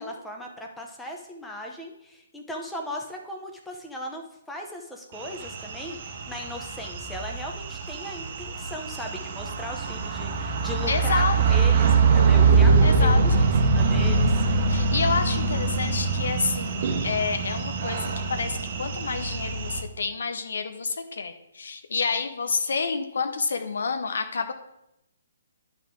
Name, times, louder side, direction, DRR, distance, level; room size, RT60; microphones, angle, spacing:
voice 1, 0.0-14.4, left 1 dB, 5° left, 1 dB, 1.0 m, -38 dB
sound 1, 5.2-19.8, right 4 dB, 45° right, 0.9 m, -23 dB
voice 2, 10.9-11.6 12.8-13.4 14.7-24.5, left 5 dB, 65° left, 8 dB, 0.7 m, -29 dB
11.0 x 3.7 x 4.8 m, 0.84 s
figure-of-eight pair, 130°, 0 cm